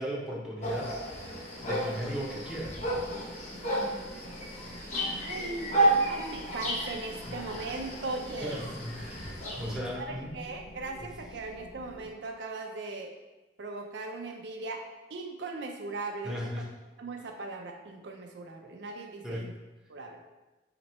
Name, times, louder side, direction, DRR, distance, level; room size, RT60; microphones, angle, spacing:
voice 1, 0.0-2.8 7.3-7.4 8.4-10.4 16.2-16.7 19.2-19.5, equal, 5° right, -4 dB, 0.8 m, -37 dB
sound 1, 0.6-9.8, right 1 dB, 40° left, 0.9 m, -32 dB
sound 2, 1.5-12.1, equal, 85° left, 0.6 m, -49 dB
voice 2, 5.1-8.6 10.0-13.1 13.6-14.8 15.1-16.4 17.0-19.5 19.9-20.2, right 3 dB, 75° right, 3 dB, 0.5 m, -39 dB
4.3 x 2.9 x 4.2 m, 1.1 s
head